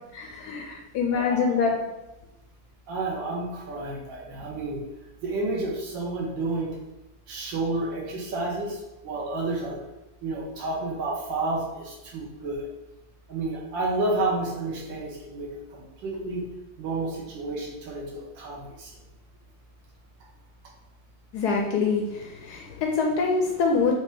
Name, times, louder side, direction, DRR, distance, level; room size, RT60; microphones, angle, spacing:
voice 1, 0.1-1.8 21.3-23.9, left 5 dB, 75° left, 1 dB, 1.0 m, -25 dB
voice 2, 1.1-1.7 2.9-4.8 5.2-6.7 7.3-9.8 10.2-12.6 13.3-16.4 16.8-18.9, right 2 dB, 80° right, -3 dB, 1.6 m, -30 dB
4.9 x 2.7 x 3.4 m, 0.99 s
omnidirectional pair, 2.0 m